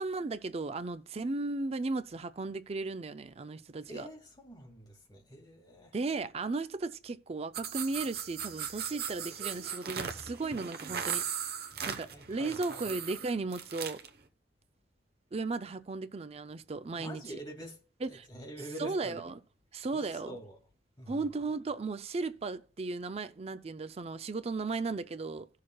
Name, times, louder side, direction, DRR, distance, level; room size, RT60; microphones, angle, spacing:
voice 1, 0.0-4.1 5.9-11.3 11.9-14.0 15.3-17.4 18.0-18.3 18.8-19.3 19.7-20.4 21.1-25.5, right 3 dB, 35° right, 0.4 m, -35 dB
voice 2, 3.9-5.9 12.1-12.9 17.0-17.8 18.3-19.2 19.9-20.6 21.0-21.2, equal, 25° left, 2.2 m, -45 dB
sound 1, 7.5-14.1, right 8 dB, 60° right, 1.0 m, -38 dB
17.0 x 6.5 x 2.3 m
head